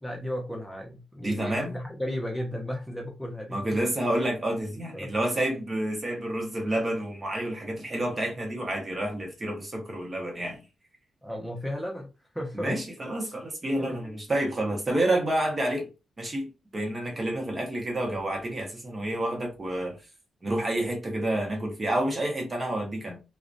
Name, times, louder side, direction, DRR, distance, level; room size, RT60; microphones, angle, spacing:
voice 1, 0.0-3.8 4.9-5.1 11.2-12.1 12.3-12.8 13.9-14.0, equal, 5° left, 0.6 m, -34 dB
voice 2, 1.2-1.7 3.5-10.6 12.5-15.9 16.2-20.0 20.4-23.2, right 1 dB, 30° right, 0.8 m, -29 dB
2.4 x 2.1 x 2.5 m
cardioid pair, 95°, 0 cm